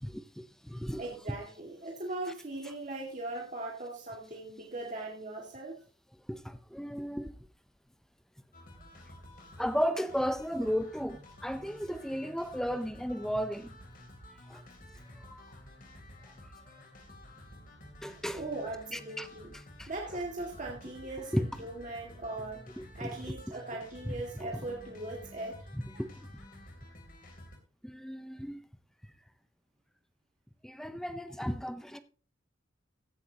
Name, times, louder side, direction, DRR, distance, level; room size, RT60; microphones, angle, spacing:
voice 1, 0.0-1.0 6.3-7.3 9.6-13.7 14.5-14.6 15.3-15.4 18.0-18.4 18.9-19.3 19.8-19.9 21.3-21.5 22.8-23.1 26.0-26.1 27.8-28.6 30.6-32.0, equal, ahead, 0.6 m, -34 dB
voice 2, 1.0-5.8 18.3-19.5 19.9-22.6 22.9-25.6, right 2 dB, 40° right, 2.1 m, -39 dB
sound 1, 8.5-27.6, left 1 dB, 45° left, 3.2 m, -51 dB
15.5 x 10.5 x 2.9 m
head